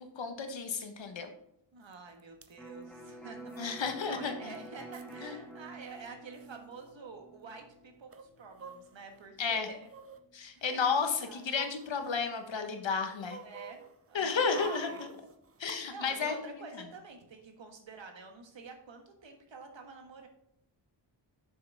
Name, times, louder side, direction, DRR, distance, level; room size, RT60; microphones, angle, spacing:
voice 1, 0.2-1.3 3.6-4.5 5.2-5.4 9.4-9.7 10.3-13.4 14.1-15.1 15.6-16.5, left 5 dB, 75° left, 6 dB, 1.3 m, -32 dB
voice 2, 1.7-9.9 10.5-10.8 11.2-11.7 13.4-15.1 15.9-20.3, right 4 dB, 75° right, 4 dB, 1.6 m, -49 dB
sound 1, 1.9-2.0 2.2-2.5 3.5-3.9 4.3-4.4 4.5-5.1 6.0-6.1 6.3-6.5 8.1-9.2 9.8-10.2 10.8-12.5 12.8-15.8 16.1-16.2, right 4 dB, 30° right, 0.6 m, -48 dB
Electric guitar, 2.6-10.2, right 2 dB, ahead, 1.8 m, -50 dB
6.9 x 6.5 x 3.5 m, 0.77 s
wide cardioid pair, 80°, 45 cm